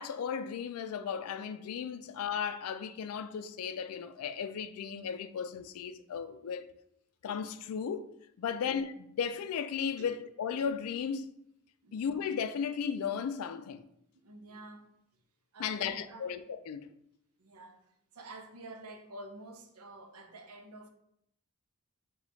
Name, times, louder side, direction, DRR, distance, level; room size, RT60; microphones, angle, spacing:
voice 1, 0.0-6.7 7.2-8.1 8.4-11.3 11.9-13.8 15.6-16.9, left 7 dB, 75° left, 0.3 m, -35 dB
voice 2, 8.4-8.7 10.0-10.1 11.8-12.0 14.1-14.9 15.5-16.3 17.4-20.9, right 2 dB, 75° right, 0.6 m, -49 dB
5.0 x 2.3 x 4.0 m
head